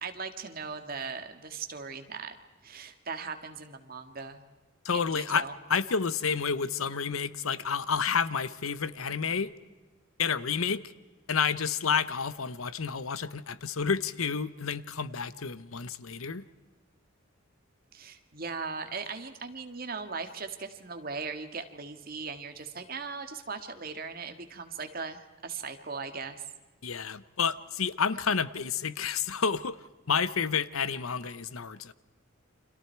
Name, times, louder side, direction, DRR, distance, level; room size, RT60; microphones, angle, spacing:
voice 1, 0.0-2.4 2.6-4.4 4.9-5.5 17.9-26.5, right 5 dB, 45° right, 7 dB, 1.8 m, -39 dB
voice 2, 4.8-9.5 10.2-10.8 11.3-16.4 26.8-29.8 30.1-31.9, left 6 dB, 85° left, 16 dB, 0.9 m, -30 dB
30.0 x 26.0 x 4.6 m, 1.3 s
head